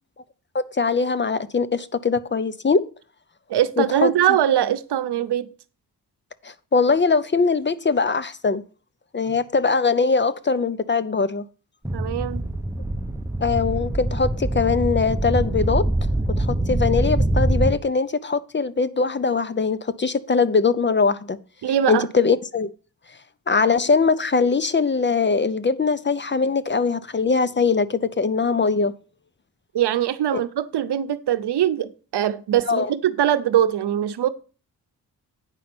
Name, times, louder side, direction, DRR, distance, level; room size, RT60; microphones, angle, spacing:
voice 1, 0.7-2.8 3.8-4.1 6.4-8.6 9.1-11.4 13.4-15.9 16.4-21.4 21.9-22.7 23.5-28.9 30.3-30.4 32.7-32.9, left 4 dB, 30° left, 0.6 m, -21 dB
voice 2, 3.5-5.5 11.9-12.4 21.6-22.1 29.7-34.3, right 10 dB, 80° right, 0.7 m, -22 dB
sound 1, 11.8-17.7, right 1 dB, 5° right, 0.9 m, -24 dB
9.0 x 5.3 x 6.0 m
cardioid pair, 90°, 40 cm